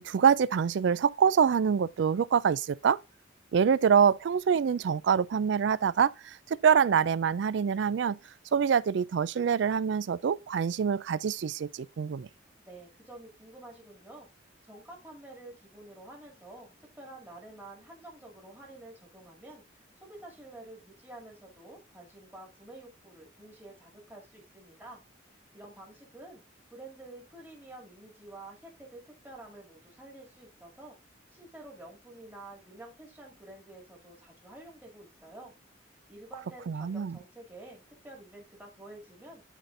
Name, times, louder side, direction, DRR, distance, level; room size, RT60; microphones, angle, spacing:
voice 1, 0.0-3.0 3.5-8.2 8.5-12.3 36.7-37.2, right 7 dB, 65° right, 0.3 m, -25 dB
voice 2, 12.6-14.3 14.6-25.0 25.3-26.4 26.7-31.0 31.3-35.5 36.1-39.4, right 2 dB, 10° right, 2.1 m, -49 dB
11.0 x 4.2 x 2.6 m
head